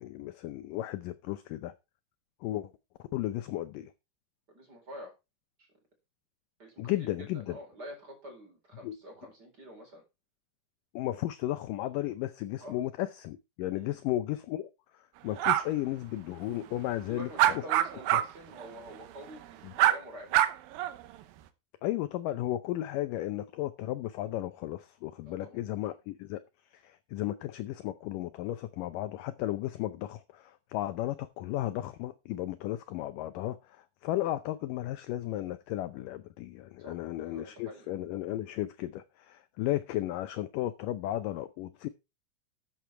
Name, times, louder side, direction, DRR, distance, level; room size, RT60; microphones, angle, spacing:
voice 1, 0.0-1.7 2.4-2.7 3.1-3.9 6.8-7.6 8.8-9.0 10.9-14.7 15.2-17.6 19.6-19.7 21.8-26.4 26.7-41.9, left 14 dB, 80° left, 1.9 m, -34 dB
voice 2, 4.5-5.1 5.6-5.7 6.6-10.0 12.6-12.8 13.7-14.0 17.1-20.4 25.3-25.6 36.8-37.9, right 1 dB, 25° right, 4.5 m, -47 dB
sound 1, 15.4-15.6 17.4-18.2 18.6-18.7 19.8-20.0 20.3-20.9, right 13 dB, 70° right, 2.5 m, -24 dB
13.5 x 7.5 x 4.4 m
omnidirectional pair, 4.7 m